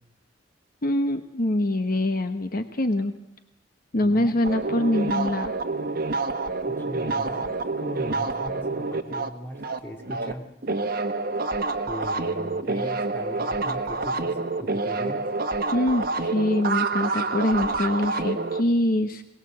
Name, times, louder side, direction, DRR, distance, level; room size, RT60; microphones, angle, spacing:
voice 1, 0.8-3.1 3.9-5.5 15.7-19.2, left 1 dB, 50° left, 8 dB, 1.0 m, -24 dB
voice 2, 4.0-4.4 6.7-7.5 7.8-10.4 11.9-15.2, equal, 10° left, 2 dB, 2.8 m, -39 dB
sound 1, 4.4-10.3 10.6-18.6, right 3 dB, 55° right, 1.3 m, -28 dB
22.5 x 19.0 x 7.6 m, 0.82 s
head